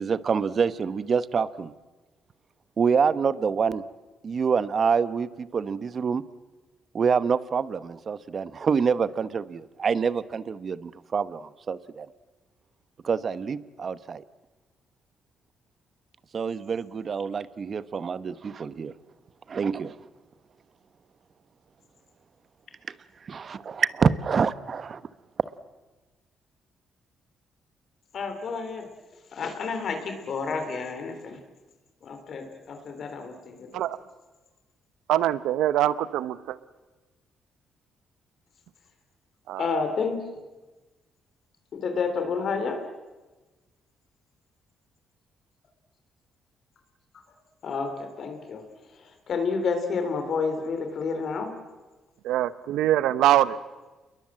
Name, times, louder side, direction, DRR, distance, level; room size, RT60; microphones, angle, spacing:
voice 1, 0.0-1.7 2.8-3.8 4.2-6.2 6.9-12.1 13.0-14.2 16.3-18.9 19.5-19.9 23.2-25.0, right 6 dB, 45° right, 15 dB, 1.0 m, -26 dB
voice 2, 28.1-28.9 29.3-31.4 32.0-33.8 39.6-40.2 41.7-42.9 47.6-51.6, left 5 dB, 60° left, 6 dB, 3.8 m, -30 dB
voice 3, 35.1-36.6 39.5-39.6 52.2-53.6, right 13 dB, 85° right, 16 dB, 0.8 m, -23 dB
28.5 x 22.0 x 7.6 m, 1.2 s
cardioid pair, 90°, 0 cm